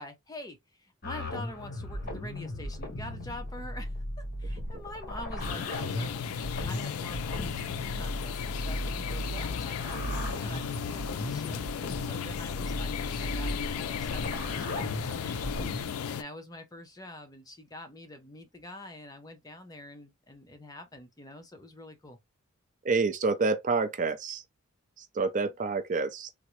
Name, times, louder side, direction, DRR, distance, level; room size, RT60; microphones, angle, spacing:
voice 1, 0.0-6.1 6.6-15.5 16.1-22.2, left 1 dB, 15° left, 0.6 m, -45 dB
sound 1, 1.0-15.8, left 1 dB, 45° left, 0.9 m, -36 dB
sound 2, 5.4-16.2, left 8 dB, 80° left, 0.3 m, -35 dB
voice 2, 22.8-24.4 25.0-26.3, right 4 dB, 35° right, 0.4 m, -28 dB
3.5 x 2.0 x 3.0 m
head